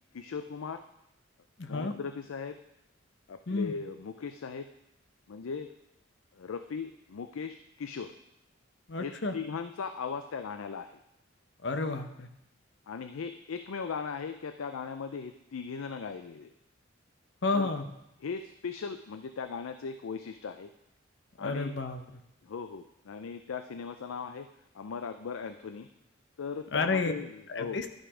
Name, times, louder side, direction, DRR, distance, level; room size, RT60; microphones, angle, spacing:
voice 1, 0.1-0.8 1.7-2.6 3.3-4.7 5.3-5.7 6.3-8.1 9.0-11.0 12.9-16.5 17.5-17.7 18.2-20.7 21.4-21.7 22.4-24.5 24.7-25.9 26.4-27.8, left 5 dB, 90° left, 9 dB, 0.5 m, -38 dB
voice 2, 1.6-1.9 3.5-3.7 8.9-9.3 11.6-12.3 17.4-17.9 21.4-22.0 26.7-27.1 27.5-27.9, left 3 dB, 60° left, 8 dB, 0.8 m, -30 dB
12.0 x 5.9 x 4.9 m, 0.83 s
head